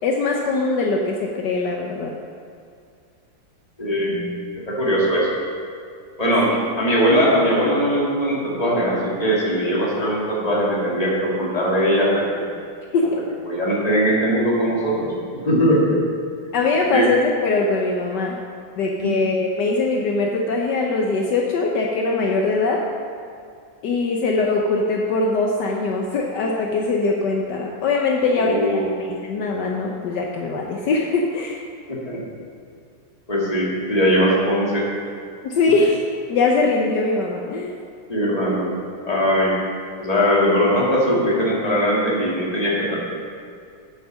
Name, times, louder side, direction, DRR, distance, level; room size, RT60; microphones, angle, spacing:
voice 1, 0.0-2.1 6.5-6.6 12.9-13.2 16.5-18.4 18.8-22.8 23.8-31.6 35.4-36.0 36.3-37.8, left 3 dB, 70° left, 0 dB, 1.4 m, -22 dB
voice 2, 3.8-5.3 6.2-6.5 6.8-12.5 13.5-16.0 16.9-17.1 19.0-19.2 28.4-28.9 31.9-32.2 33.3-34.9 38.1-38.8 39.0-39.5 40.0-43.0, equal, 20° left, -5 dB, 2.2 m, -20 dB
9.0 x 7.3 x 6.3 m, 2.3 s
omnidirectional pair, 2.0 m